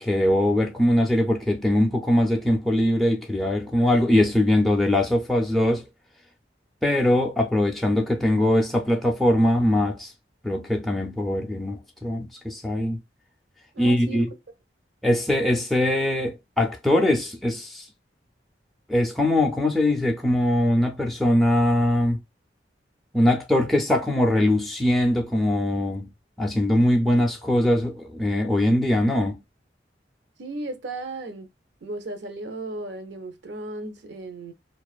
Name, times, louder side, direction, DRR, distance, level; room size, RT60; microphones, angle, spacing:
voice 1, 0.0-5.9 6.8-10.1 10.4-13.0 13.8-14.3 15.0-17.9 18.9-22.2 23.1-26.1 26.4-29.4, left 1 dB, ahead, 0.3 m, -22 dB
voice 2, 13.7-14.2 30.4-31.5 31.8-34.5, right 2 dB, 80° right, 0.6 m, -35 dB
2.4 x 2.3 x 2.3 m
head